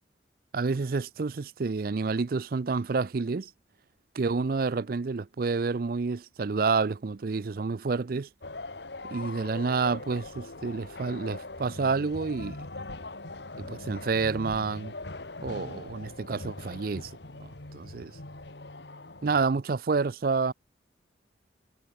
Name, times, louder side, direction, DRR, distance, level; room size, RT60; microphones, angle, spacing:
voice 1, 0.5-3.5 4.1-8.3 9.0-12.6 13.6-14.9 15.4-17.1 17.7-18.1 19.2-20.5, right 4 dB, 50° right, 0.5 m, -29 dB
sound 1, 8.4-19.5, left 2 dB, 70° left, 2.3 m, -41 dB
head